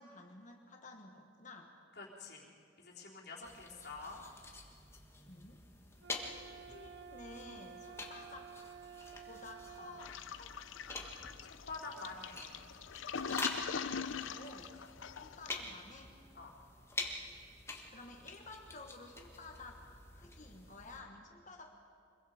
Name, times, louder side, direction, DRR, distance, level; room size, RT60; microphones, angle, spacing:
voice 1, 0.0-1.7 5.3-5.6 6.5-8.6 9.3-10.6 14.3-14.8 15.2-16.2 17.9-19.8 20.1-21.8, left 3 dB, 40° left, 2 dB, 1.5 m, -53 dB
voice 2, 2.0-2.5 2.8-4.2 11.1-12.4 16.3-16.5, left 3 dB, 55° left, -3 dB, 3.7 m, -47 dB
sound 1, 3.4-21.0, left 3 dB, 15° left, 1.6 m, -47 dB
sound 2, 6.0-10.1, right 7 dB, 75° right, 0.6 m, -52 dB
Toilet flush, 10.0-15.7, left 6 dB, 85° left, 0.6 m, -42 dB
25.5 x 22.0 x 5.1 m, 2.3 s
head